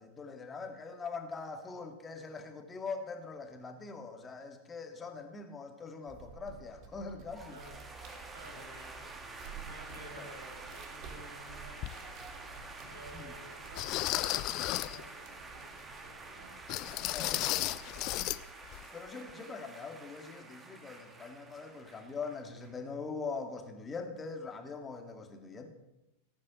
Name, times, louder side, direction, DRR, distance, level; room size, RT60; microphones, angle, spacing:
voice 1, 0.0-7.6 13.1-13.3 17.1-17.4 18.9-25.7, left 4 dB, 15° left, 5 dB, 2.1 m, -42 dB
sound 1, 6.1-18.4, right 5 dB, 40° right, 3.3 m, -52 dB
sound 2, 7.3-22.8, right 3 dB, 15° right, 2.4 m, -49 dB
voice 2, 7.5-12.4 12.9-16.6 17.3-18.0, right 1 dB, 75° right, 1 dB, 6.4 m, -54 dB
sound 3, 11.8-11.9 12.6-12.7 13.8-15.0 16.7-18.4 18.7-18.9 19.3-19.4, left 17 dB, 40° left, 0.6 m, -33 dB
18.0 x 9.7 x 7.7 m, 0.93 s
figure-of-eight pair, 90°, 0 cm